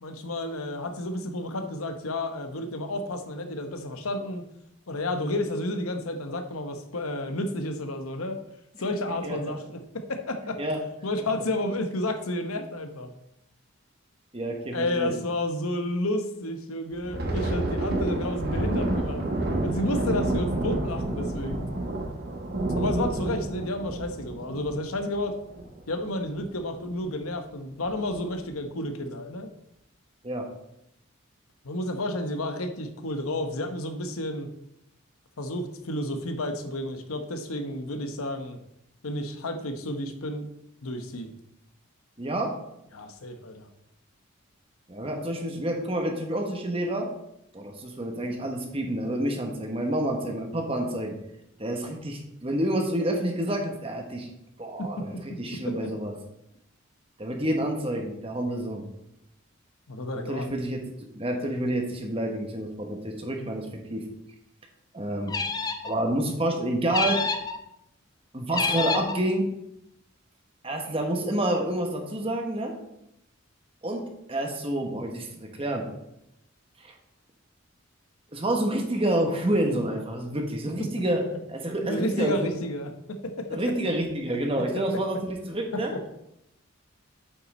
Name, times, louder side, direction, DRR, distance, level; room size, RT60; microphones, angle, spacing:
voice 1, 0.0-4.5 4.9-8.4 8.8-10.6 11.0-13.1 14.7-19.2 19.6-21.6 22.7-25.3 25.9-29.5 31.6-34.5 35.4-38.6 39.0-40.5 40.8-41.3 42.9-43.7 54.8-55.2 55.6-55.9 59.9-60.5 81.8-83.7 84.7-84.8 85.7-86.1, left 1 dB, 90° left, 7 dB, 0.9 m, -31 dB
voice 2, 14.3-15.1 30.2-30.4 42.2-42.5 44.9-47.1 47.5-51.1 51.6-54.3 54.6-56.1 57.2-58.8 60.3-60.8 61.1-64.0 64.9-65.3 65.8-67.2 68.3-69.5 70.6-72.7 73.8-74.0 74.3-75.8 76.8-76.9 78.3-81.2 81.5-82.5 83.5-85.9, right 1 dB, 25° right, 3 dB, 1.2 m, -28 dB
Thunder, 16.9-26.0 26.3-26.5 26.9-27.2 27.8-28.3, right 2 dB, 50° right, 1.4 m, -29 dB
sound 1, 65.3-65.9 66.9-67.6 68.5-69.2, left 4 dB, 20° left, 0.4 m, -28 dB
8.5 x 5.7 x 4.2 m, 0.81 s
head